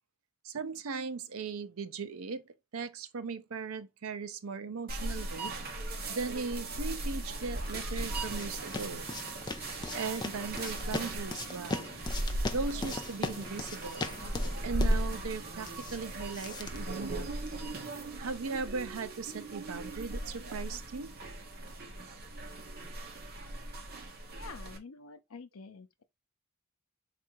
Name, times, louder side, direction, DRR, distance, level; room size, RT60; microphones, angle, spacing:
voice 1, 0.4-2.4 2.7-5.5 6.1-9.1 9.9-11.9 12.5-14.0 14.6-17.4 18.2-21.1, right 4 dB, 85° right, 0.6 m, -38 dB
sound 1, 4.9-24.8, right 1 dB, 45° right, 0.8 m, -37 dB
sound 2, 7.6-17.7, left 3 dB, 20° left, 0.3 m, -40 dB
voice 2, 24.4-26.0, left 4 dB, 85° left, 0.6 m, -48 dB
3.6 x 2.5 x 4.4 m
head